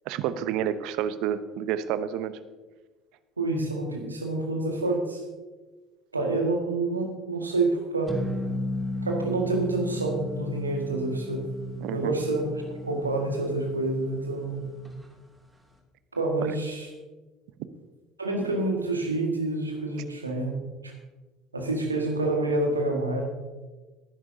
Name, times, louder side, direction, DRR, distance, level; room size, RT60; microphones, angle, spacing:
voice 1, 0.1-2.4 11.8-12.2 16.4-16.6, right 10 dB, 60° right, 13 dB, 0.7 m, -29 dB
voice 2, 3.4-5.2 6.1-8.2 9.0-11.4 11.9-12.4 12.9-14.6 16.1-16.9 18.2-20.5 20.8-20.9 21.5-23.2, right 2 dB, 90° right, 2 dB, 1.8 m, -27 dB
sound 1, 8.1-14.9, left 1 dB, 10° right, 2.6 m, -35 dB
18.5 x 10.5 x 2.8 m, 1.2 s
figure-of-eight pair, 65°, 0 cm